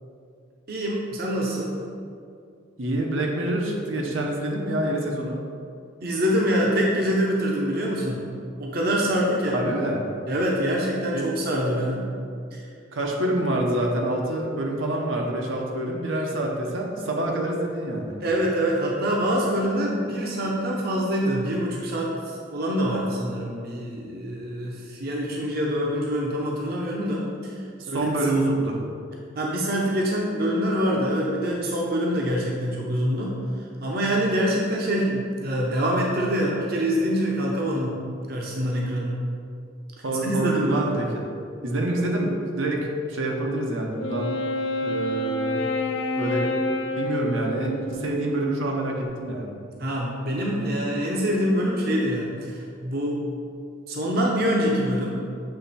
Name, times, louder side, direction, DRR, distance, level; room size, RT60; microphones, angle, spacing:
voice 1, 0.7-1.8 6.0-8.2 8.6-9.6 10.3-12.1 12.5-12.6 18.2-27.5 27.9-28.1 29.4-33.3 33.8-38.0 38.3-39.2 40.2-40.9 49.8-53.2 53.9-55.1, equal, 50° right, -2 dB, 0.7 m, -25 dB
voice 2, 2.8-5.4 9.5-10.0 11.1-11.3 12.9-18.1 27.8-28.8 40.0-41.3 41.6-44.3 44.8-45.6 46.2-46.6 47.0-49.5, right 1 dB, 80° right, 0 dB, 0.8 m, -26 dB
Wind instrument woodwind instrument, 44.0-48.5, left 1 dB, 70° left, 0.5 m, -28 dB
7.8 x 3.4 x 4.2 m, 2.4 s
head